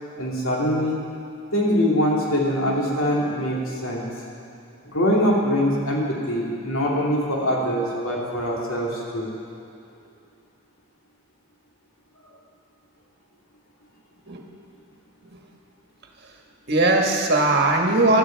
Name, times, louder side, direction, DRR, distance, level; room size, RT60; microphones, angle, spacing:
voice 1, 0.2-1.0 1.5-4.0 4.9-9.3, equal, 70° left, -3 dB, 2.6 m, -23 dB
voice 2, 16.7-18.2, right 2 dB, 45° right, 1 dB, 1.4 m, -20 dB
16.5 x 11.5 x 4.6 m, 2.6 s
head